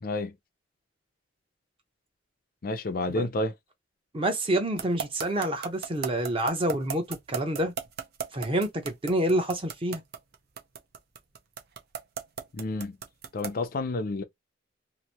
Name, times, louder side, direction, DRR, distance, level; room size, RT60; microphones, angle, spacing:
voice 1, 0.0-0.3 2.6-3.5 12.5-13.0 13.3-14.2, left 2 dB, 50° left, 0.5 m, -30 dB
voice 2, 4.1-7.7 8.3-10.0, right 1 dB, 30° right, 0.8 m, -28 dB
sound 1, 4.8-13.6, right 7 dB, 55° right, 0.6 m, -35 dB
2.9 x 2.6 x 2.9 m
head